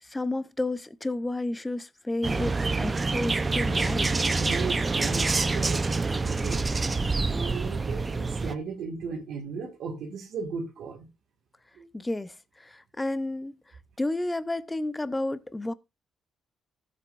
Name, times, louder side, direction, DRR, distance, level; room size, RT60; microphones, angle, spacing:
voice 1, 0.0-4.1 11.9-13.6 14.0-15.7, left 2 dB, 15° left, 0.7 m, -31 dB
sound 1, 2.2-8.5, right 3 dB, 25° right, 0.7 m, -26 dB
voice 2, 4.4-5.8 6.2-6.7 7.2-11.1 11.8-11.9, right 5 dB, 75° right, 1.9 m, -36 dB
14.5 x 7.7 x 2.6 m
cardioid pair, 90°, 0 cm